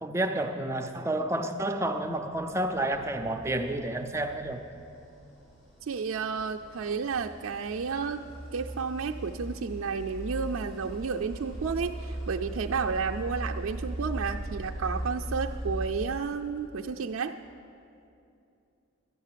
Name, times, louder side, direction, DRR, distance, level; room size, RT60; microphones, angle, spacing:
voice 1, 0.0-4.6, right 1 dB, 15° right, 5 dB, 0.4 m, -30 dB
sound 1, 2.4-16.8, right 1 dB, 80° left, 4.0 m, -39 dB
voice 2, 5.8-8.2 8.5-17.3, right 5 dB, 85° right, 3 dB, 0.4 m, -31 dB
11.5 x 10.5 x 7.4 m, 2.6 s
head